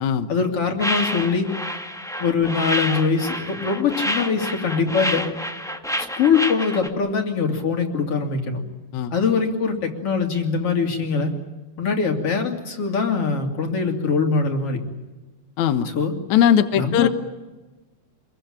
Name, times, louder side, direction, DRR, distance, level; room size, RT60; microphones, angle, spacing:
voice 1, 0.3-1.5 2.2-5.3 6.0-8.6 9.1-11.3 11.8-14.8 15.9-16.1 16.7-17.1, left 5 dB, 45° left, 4 dB, 3.7 m, -22 dB
sound 1, 0.8-6.9, equal, 5° left, 0.5 m, -28 dB
voice 2, 15.6-15.9 16.3-17.1, left 9 dB, 70° left, 9 dB, 2.5 m, -19 dB
26.5 x 22.5 x 8.9 m, 1.2 s
omnidirectional pair, 3.7 m